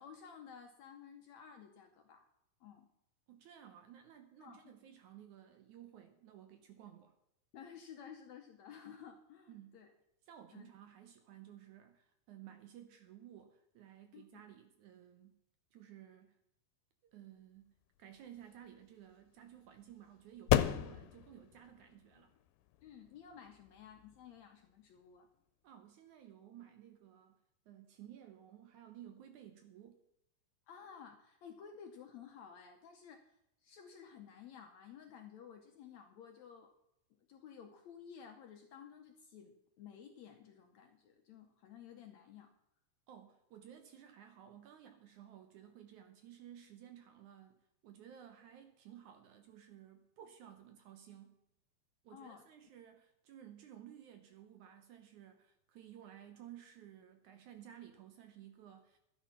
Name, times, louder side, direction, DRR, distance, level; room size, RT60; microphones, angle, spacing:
voice 1, 0.0-2.3 2.6-2.9 4.4-4.7 7.5-9.9 10.5-10.7 14.1-14.4 22.8-25.3 30.7-33.3 33.6-36.7 37.3-42.5 52.1-52.5, left 7 dB, 70° left, 4 dB, 1.8 m, -54 dB
voice 2, 3.3-7.2 9.5-9.8 10.3-15.4 15.7-16.4 17.0-17.7 18.0-22.4 25.6-27.4 27.7-30.0 43.1-51.4 52.0-59.0, right 10 dB, 70° right, 7 dB, 2.0 m, -56 dB
sound 1, 17.9-25.2, left 12 dB, 85° left, 2.5 m, -38 dB
12.5 x 8.9 x 5.8 m, 0.80 s
omnidirectional pair, 4.1 m